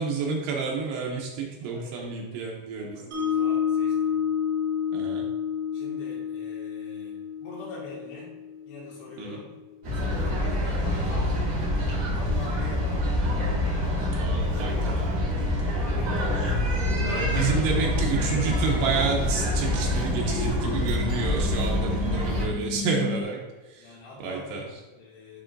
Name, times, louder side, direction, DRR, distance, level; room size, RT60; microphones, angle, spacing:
voice 1, 0.0-3.0 4.9-5.2 9.2-9.4 14.2-15.9 17.1-23.4 23.7-23.8 24.2-24.6, right 5 dB, 85° right, -1 dB, 2.3 m, -30 dB
voice 2, 1.6-4.2 5.7-8.3 8.7-9.5 9.9-11.4 12.1-13.2 15.7-18.0 22.2-22.7 23.8-25.4, left 2 dB, 65° left, -5 dB, 3.7 m, -45 dB
Mallet percussion, 3.1-9.3, left 8 dB, 65° right, 1.7 m, -29 dB
sound 1, 9.8-22.4, left 1 dB, 40° right, 2.2 m, -26 dB
sound 2, 19.1-23.2, left 6 dB, 90° left, 2.5 m, -36 dB
11.0 x 3.7 x 2.5 m, 1.2 s
omnidirectional pair, 5.5 m